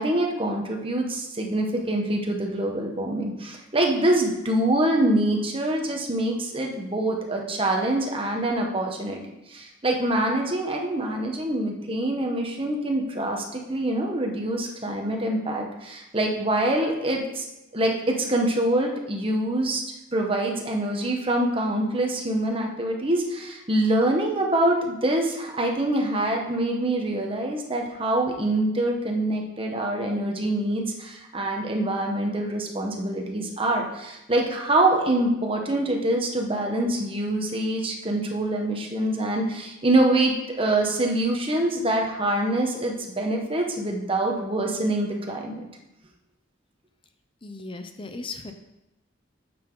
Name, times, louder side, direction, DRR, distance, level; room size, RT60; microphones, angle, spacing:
voice 1, 0.0-9.2 9.5-17.5 17.7-19.8 20.1-45.6, right 1 dB, 30° right, 1 dB, 1.3 m, -25 dB
voice 2, 47.4-48.5, left 3 dB, 25° left, 6 dB, 0.7 m, -37 dB
9.2 x 7.0 x 3.9 m, 0.92 s
head